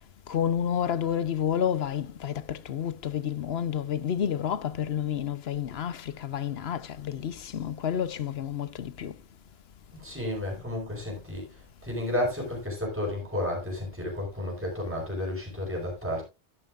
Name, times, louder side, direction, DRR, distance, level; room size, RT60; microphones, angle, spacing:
voice 1, 0.3-9.2, left 9 dB, 80° left, 1.0 m, -30 dB
voice 2, 10.0-11.5 11.8-16.2, left 1 dB, 10° right, 4.6 m, -32 dB
11.0 x 11.0 x 2.4 m
omnidirectional pair, 1.0 m